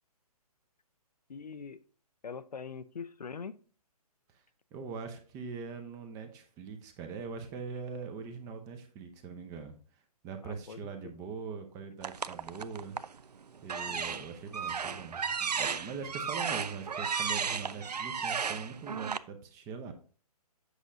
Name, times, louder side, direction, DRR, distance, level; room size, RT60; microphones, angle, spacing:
voice 1, 1.3-1.8 2.2-3.6 10.4-11.1 13.9-14.2, left 6 dB, 85° left, 14 dB, 0.5 m, -43 dB
voice 2, 4.7-9.7 10.2-13.0 13.6-19.9, right 5 dB, 15° right, 7 dB, 0.7 m, -42 dB
sound 1, 12.0-13.2 13.6-19.2, right 6 dB, 90° right, 0.4 m, -34 dB
8.1 x 6.1 x 2.6 m, 0.41 s
figure-of-eight pair, 135°, 20 cm